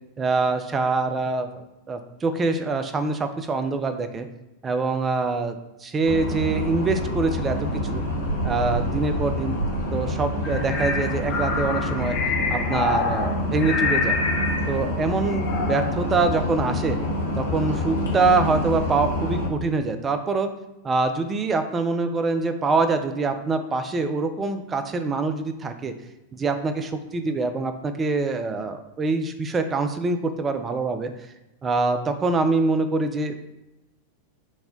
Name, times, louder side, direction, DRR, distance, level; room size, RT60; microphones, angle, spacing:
voice 1, 0.2-4.3 4.6-7.5 7.9-8.0 8.4-9.6 9.9-12.2 12.5-14.2 14.7-17.0 17.4-20.5 20.8-25.9 26.3-31.1 31.6-33.4, right 3 dB, 20° right, 8 dB, 0.4 m, -24 dB
sound 1, 6.0-19.5, left 1 dB, 70° left, 1.0 m, -27 dB
sound 2, 10.4-14.8 15.2-15.9, left 4 dB, 35° left, 0.8 m, -27 dB
4.1 x 2.2 x 3.6 m, 0.95 s
figure-of-eight pair, 90°, 0 cm